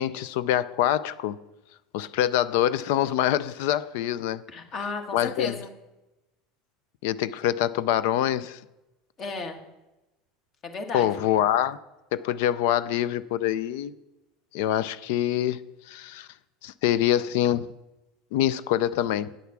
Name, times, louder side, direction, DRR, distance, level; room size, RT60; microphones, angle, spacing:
voice 1, 0.0-1.3 1.9-4.4 5.1-5.6 7.0-8.6 10.9-11.8 12.1-13.9 14.5-15.6 15.9-16.3 16.6-17.7 18.3-19.3, left 12 dB, 75° left, 0.4 m, -25 dB
voice 2, 4.5-5.7 9.2-9.6 10.6-11.1, left 4 dB, 40° left, 1.7 m, -34 dB
8.4 x 8.2 x 5.9 m
supercardioid pair, 105°, 0 cm